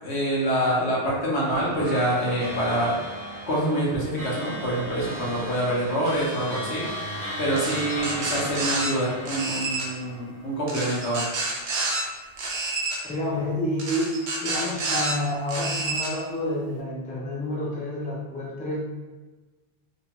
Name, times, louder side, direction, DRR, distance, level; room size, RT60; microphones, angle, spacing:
voice 1, 0.0-3.0 3.5-6.9 7.4-11.2, right 1 dB, 85° left, -5 dB, 1.1 m, -26 dB
sound 1, 1.5-11.1, equal, 45° right, 0.7 m, -36 dB
sound 2, 7.6-8.9 9.3-9.9 10.7-12.0 12.4-13.0 13.8-15.1 15.5-16.1, right 3 dB, 85° right, 0.9 m, -29 dB
voice 2, 13.1-18.8, left 1 dB, 15° left, -5 dB, 0.3 m, -29 dB
3.0 x 2.2 x 2.8 m, 1.2 s
omnidirectional pair, 1.1 m